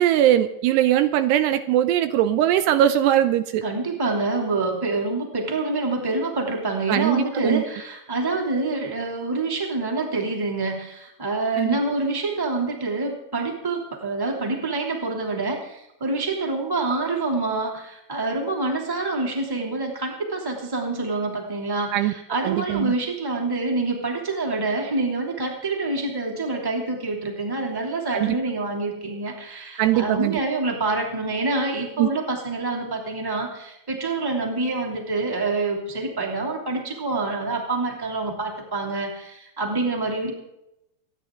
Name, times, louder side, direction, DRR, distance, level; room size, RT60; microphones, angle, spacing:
voice 1, 0.0-3.6 6.9-7.6 11.6-11.8 21.9-22.1 22.4-22.9 28.1-28.4 29.8-30.4 32.0-32.1, right 12 dB, 80° right, 11 dB, 2.8 m, -20 dB
voice 2, 3.6-40.3, right 3 dB, 5° right, 1 dB, 2.1 m, -26 dB
27.0 x 9.8 x 3.8 m, 0.85 s
omnidirectional pair, 5.0 m